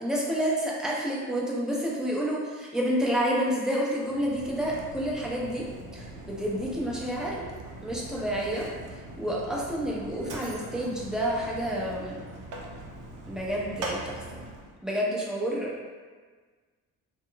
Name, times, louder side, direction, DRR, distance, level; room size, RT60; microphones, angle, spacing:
voice 1, 0.0-5.6 5.9-7.5 7.8-8.7 9.2-12.2 13.3-14.0 14.8-15.7, equal, ahead, -5 dB, 0.5 m, -29 dB
Mechanisms, 4.0-14.8, right 2 dB, 45° right, 0.6 m, -41 dB
2.9 x 2.0 x 2.2 m, 1.5 s
hypercardioid pair, 40°, 44 cm